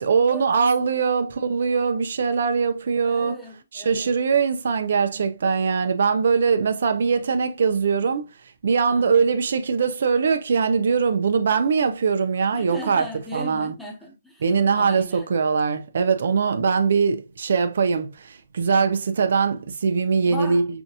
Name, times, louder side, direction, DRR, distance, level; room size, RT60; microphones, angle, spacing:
voice 1, 0.0-3.4 3.7-8.3 8.6-13.1 13.3-13.7 14.4-20.6, right 5 dB, 65° right, 0.7 m, -21 dB
voice 2, 3.0-4.2 8.9-9.3 12.5-14.4 14.7-15.3 18.7-18.9 20.3-20.7, equal, ahead, 1.1 m, -37 dB
5.7 x 2.7 x 2.4 m
hypercardioid pair, 160°, 0 cm